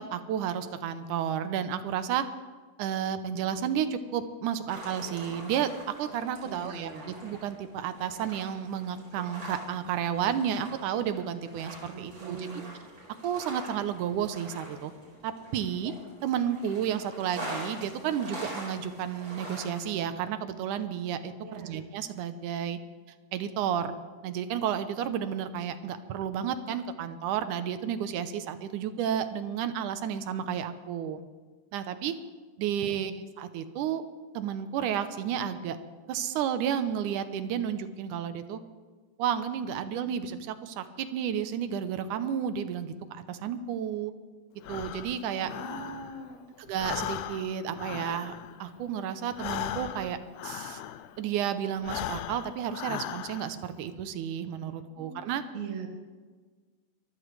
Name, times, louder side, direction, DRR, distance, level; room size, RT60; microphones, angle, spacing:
voice 1, 0.0-2.3 2.8-5.7 6.0-12.6 13.2-14.9 15.2-15.9 16.2-22.8 23.3-23.9 24.2-31.2 31.7-32.1 32.6-34.0 34.3-35.8 36.1-38.6 39.2-44.1 44.7-45.5 46.6-48.3 48.6-50.8 51.2-55.4, right 9 dB, 85° right, 10 dB, 2.3 m, -32 dB
sound 1, 4.7-20.0, right 1 dB, 45° right, 5.4 m, -44 dB
voice 2, 6.4-7.2 11.9-12.7 21.4-21.8 32.9-33.1 45.4-46.4 54.9-55.9, right 5 dB, 70° right, 3 dB, 3.1 m, -41 dB
Breathing, 44.6-46.4 46.7-51.3 51.7-53.7, left 12 dB, 80° left, 1.6 m, -38 dB
24.0 x 14.0 x 3.3 m, 1.4 s
omnidirectional pair, 3.6 m